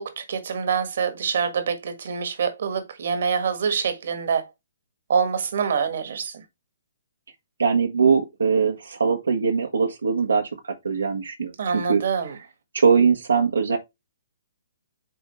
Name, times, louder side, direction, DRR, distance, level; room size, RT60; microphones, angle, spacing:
voice 1, 0.0-4.5 5.1-6.3 11.6-12.3, right 6 dB, 65° right, 1.5 m, -25 dB
voice 2, 7.6-12.0 12.7-13.8, right 5 dB, 85° right, 1.2 m, -21 dB
9.2 x 3.6 x 3.1 m
hypercardioid pair, 135°, 0 cm